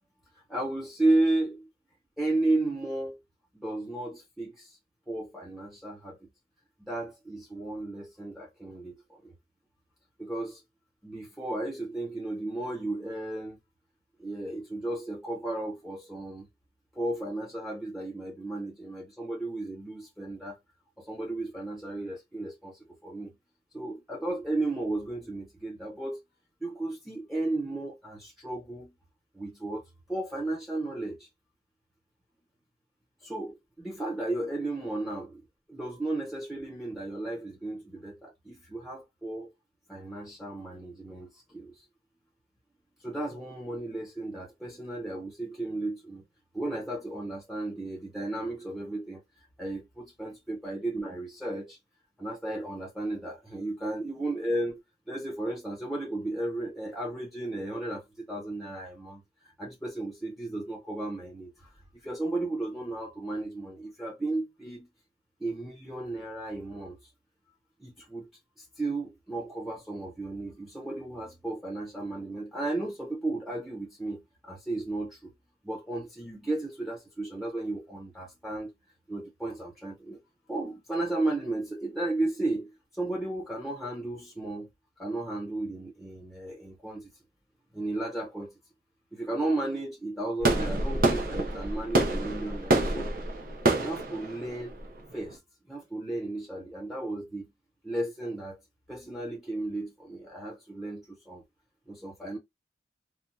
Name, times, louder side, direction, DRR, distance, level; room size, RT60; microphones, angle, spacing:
voice 1, 0.5-1.7 2.2-3.2 3.5-4.8 5.1-6.3 6.9-9.3 10.2-10.6 11.0-13.6 14.2-16.5 16.9-20.6 21.0-23.3 23.7-26.2 26.6-28.9 29.3-29.8 30.1-31.3 33.2-35.4 35.7-39.5 39.9-41.8 43.0-46.2 46.5-49.2 49.6-51.8 52.2-59.2 59.6-64.9 65.4-67.0 67.8-68.3 68.6-75.3 75.6-78.7 79.1-80.2 80.5-84.7 85.0-87.1 87.7-88.6 89.1-93.1 93.7-94.8 95.1-95.4 95.7-97.5 97.8-98.6 98.9-101.4 101.9-102.4, right 2 dB, ahead, 0.9 m, -34 dB
sound 1, 90.4-95.3, right 2 dB, 50° right, 0.7 m, -27 dB
3.5 x 2.3 x 2.7 m
head